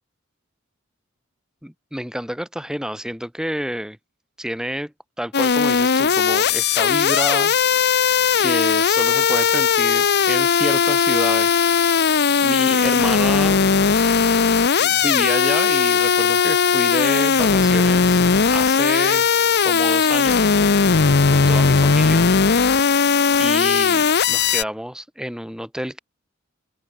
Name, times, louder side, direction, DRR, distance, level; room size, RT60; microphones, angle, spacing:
voice 1, 1.6-4.0 4.4-4.9 5.2-7.5 8.4-11.6 12.4-13.6 14.8-18.2 18.5-19.3 19.6-20.5 21.2-22.3 23.4-26.0, equal, 5° right, 4.1 m, -29 dB
sound 1, 5.3-24.6, left 5 dB, 55° left, 0.8 m, -18 dB
head